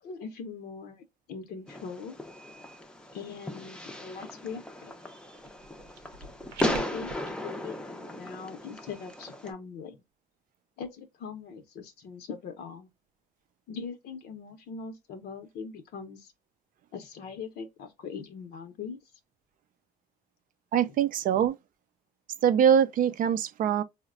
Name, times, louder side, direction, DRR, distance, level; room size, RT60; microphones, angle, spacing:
voice 1, 0.0-2.2 3.1-5.0 6.6-10.0 10.8-12.9 13.7-16.3 16.9-19.0 20.9-21.0, left 5 dB, 70° left, 0.7 m, -41 dB
Fireworks, 1.7-9.5, left 1 dB, 5° left, 0.5 m, -36 dB
sound 1, 5.4-7.3, right 4 dB, 90° right, 0.7 m, -44 dB
voice 2, 20.7-21.5 22.4-23.8, right 9 dB, 55° right, 0.4 m, -23 dB
3.9 x 2.1 x 2.3 m
cardioid pair, 110°, 17 cm